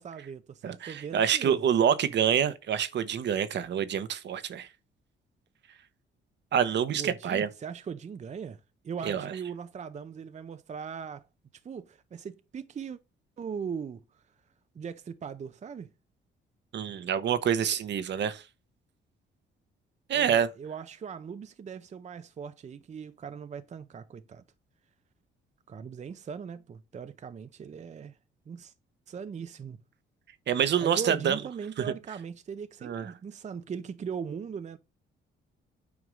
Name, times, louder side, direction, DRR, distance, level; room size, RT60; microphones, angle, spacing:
voice 1, 0.0-1.6 6.9-11.2 11.6-13.0 13.4-14.2 14.7-15.9 20.1-24.4 25.7-28.2 28.5-28.7 29.1-29.8 30.8-34.8, right 6 dB, 35° right, 0.6 m, -39 dB
voice 2, 0.6-4.7 6.5-7.5 9.0-9.3 16.7-18.4 20.1-20.5 30.5-31.4 31.8-31.9 32.8-33.1, right 8 dB, 60° right, 1.0 m, -27 dB
9.4 x 3.6 x 6.2 m
cardioid pair, 90°, 20 cm